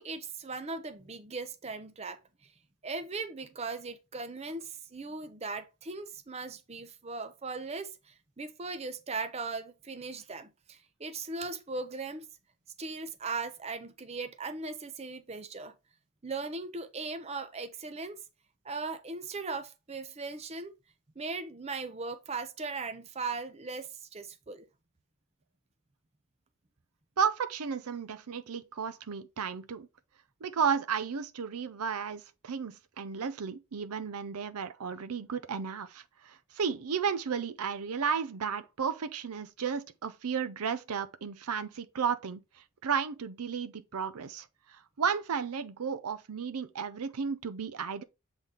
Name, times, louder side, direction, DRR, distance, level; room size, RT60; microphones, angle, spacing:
voice 1, 0.0-2.2 2.8-12.3 12.8-15.7 16.2-18.2 18.6-20.7 21.2-24.7, right 3 dB, 30° right, 0.6 m, -38 dB
voice 2, 27.2-29.9 30.4-48.0, right 6 dB, 85° right, 0.6 m, -33 dB
7.3 x 4.0 x 3.4 m
head